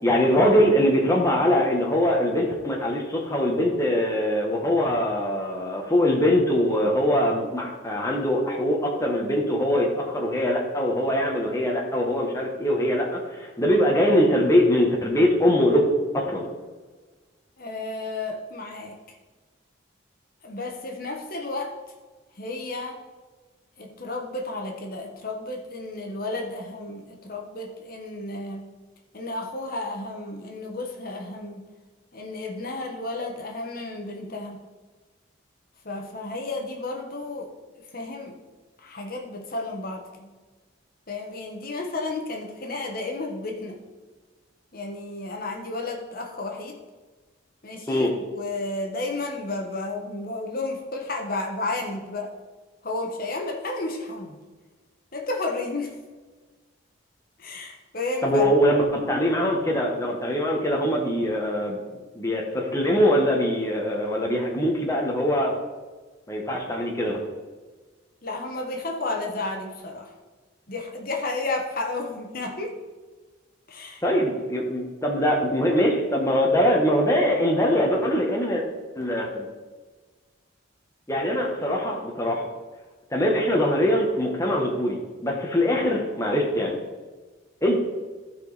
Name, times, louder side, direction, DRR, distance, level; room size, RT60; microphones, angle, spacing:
voice 1, 0.0-15.8 16.1-16.5 47.9-48.1 58.2-61.8 62.1-65.5 66.3-67.2 74.0-78.6 79.0-79.4 81.1-82.5 83.1-86.8 87.6-87.8, equal, 15° left, -1 dB, 1.1 m, -22 dB
voice 2, 17.6-19.2 20.4-21.7 22.3-23.0 23.8-28.7 29.1-31.7 32.1-34.6 35.8-37.5 37.7-38.4 38.8-40.3 41.1-43.8 44.7-46.8 47.6-52.3 52.8-54.4 55.1-55.9 57.4-58.5 68.2-70.1 70.7-72.8 73.7-74.0, left 2 dB, 45° left, 2 dB, 1.2 m, -32 dB
15.0 x 5.0 x 4.1 m, 1.3 s
head